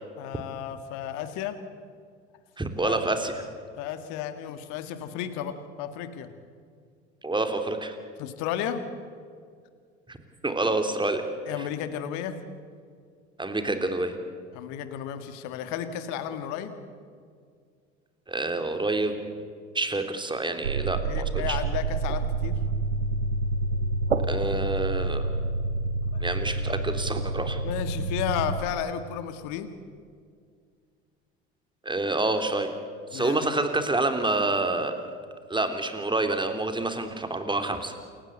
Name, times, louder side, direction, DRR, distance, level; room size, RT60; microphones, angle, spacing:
voice 1, 0.2-1.6 2.8-3.0 3.8-6.3 8.2-8.8 11.5-12.4 14.5-16.8 21.0-22.6 26.1-26.3 27.6-29.8 33.1-33.5, left 9 dB, 60° left, 10 dB, 1.8 m, -33 dB
voice 2, 2.6-3.3 7.2-7.9 10.1-10.2 10.4-11.2 13.4-14.1 18.3-19.2 19.7-21.0 21.5-21.6 24.3-25.2 26.2-27.6 31.8-32.7 33.1-34.9 35.5-37.9, right 2 dB, 15° right, 7 dB, 3.3 m, -27 dB
sound 1, 20.6-28.6, right 3 dB, 85° right, 1.0 m, -28 dB
28.5 x 16.0 x 8.0 m, 2.1 s
figure-of-eight pair, 60°, 33 cm